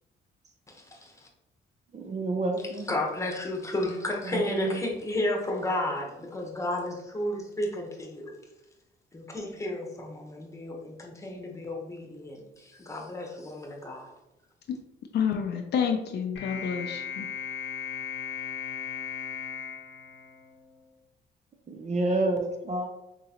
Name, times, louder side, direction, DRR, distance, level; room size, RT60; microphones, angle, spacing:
voice 1, 0.7-1.1 2.9-8.3 9.1-14.1, left 1 dB, 15° left, -1 dB, 1.0 m, -32 dB
voice 2, 1.9-2.9 4.3-4.8 21.7-22.9, right 2 dB, 35° right, 4 dB, 0.5 m, -29 dB
voice 3, 15.1-17.3, left 7 dB, 55° left, 3 dB, 0.5 m, -29 dB
sound 1, 16.3-20.8, left 7 dB, 90° left, 1.0 m, -37 dB
3.7 x 3.0 x 2.9 m, 0.92 s
cardioid pair, 90°, 20 cm